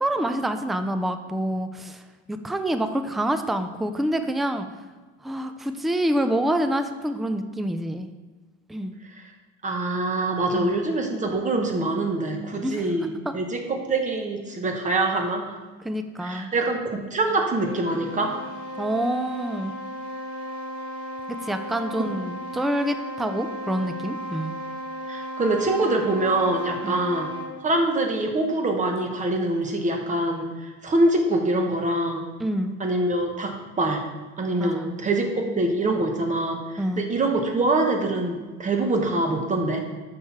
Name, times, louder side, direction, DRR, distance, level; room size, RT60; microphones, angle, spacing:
voice 1, 0.0-2.0 2.3-4.7 5.2-8.1 8.7-8.9 10.5-10.8 12.6-12.9 13.3-13.4 15.8-16.5 18.8-19.7 21.4-24.5 26.8-27.0 32.4-32.8 34.6-34.9 36.8-37.0, right 1 dB, ahead, 8 dB, 0.3 m, -27 dB
voice 2, 9.6-15.6 16.2-18.3 25.1-27.3 27.6-32.2 32.8-34.0 34.4-39.8, right 2 dB, 25° right, 3 dB, 1.1 m, -24 dB
sound 1, 17.3-27.6, equal, 80° right, 2.5 m, -35 dB
6.4 x 5.8 x 4.4 m, 1.3 s
cardioid pair, 130°, 29 cm